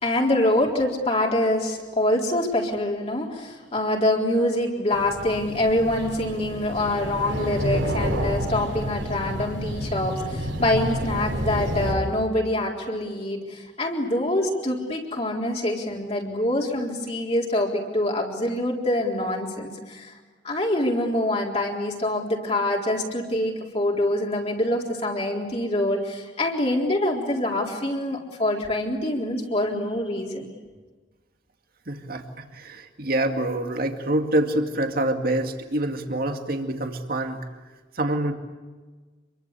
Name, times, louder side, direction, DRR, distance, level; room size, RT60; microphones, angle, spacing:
voice 1, 0.0-20.1 20.4-30.4, left 1 dB, 35° left, -2 dB, 3.9 m, -25 dB
sound 1, 4.9-11.9, equal, 80° right, 7.3 m, -29 dB
voice 2, 31.9-37.4 38.0-38.3, right 1 dB, 50° right, 5 dB, 2.3 m, -26 dB
27.5 x 23.0 x 8.4 m, 1.3 s
head